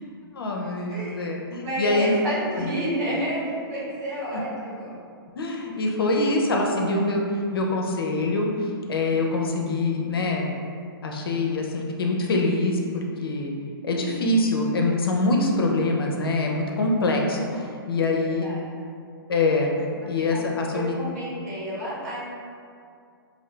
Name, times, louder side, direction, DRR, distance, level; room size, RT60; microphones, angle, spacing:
voice 1, 0.3-2.1 2.5-2.7 5.4-7.2 7.5-10.5 11.0-13.5 13.8-18.5 19.3-21.0, left 2 dB, 70° left, 0 dB, 0.5 m, -24 dB
voice 2, 0.9-1.2 1.6-4.9 18.1-18.6 20.3-22.2, right 1 dB, 45° right, -8 dB, 1.3 m, -30 dB
2.6 x 2.6 x 3.2 m, 2.3 s
hypercardioid pair, 125°, 13 cm